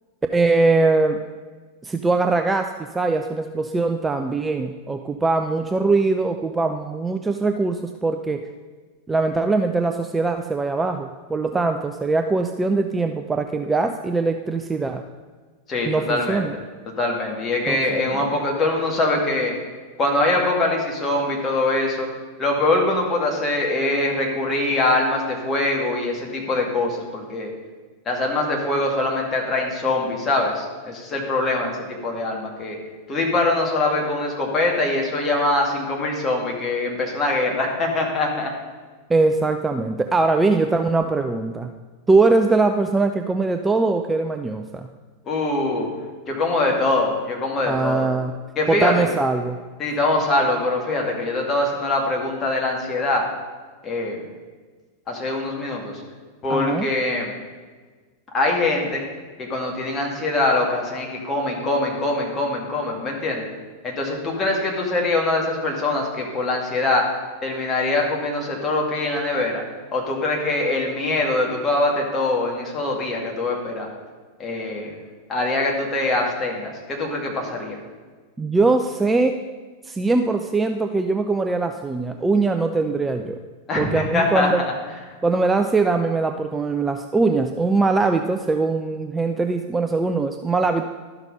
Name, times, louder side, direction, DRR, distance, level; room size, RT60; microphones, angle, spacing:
voice 1, 0.3-1.2 1.8-8.4 9.1-15.0 15.9-16.5 17.7-18.2 39.1-41.7 42.1-44.9 47.7-48.4 48.7-49.6 56.5-56.9 78.4-79.4 79.8-83.4 83.8-84.6 85.2-90.8, right 3 dB, 10° right, 6 dB, 0.4 m, -21 dB
voice 2, 15.7-16.4 17.0-19.5 20.0-22.1 22.4-27.5 28.1-31.8 32.0-32.8 33.1-38.5 45.2-45.9 46.3-48.1 48.6-49.1 49.8-53.2 53.8-54.2 55.1-55.9 56.4-57.3 58.3-59.0 59.4-63.5 63.8-67.0 67.4-69.6 69.9-73.9 74.4-74.9 75.3-77.8 83.7-84.6, left 2 dB, 25° left, -1 dB, 2.2 m, -23 dB
12.0 x 5.9 x 5.5 m, 1.4 s
figure-of-eight pair, 90°, 0 cm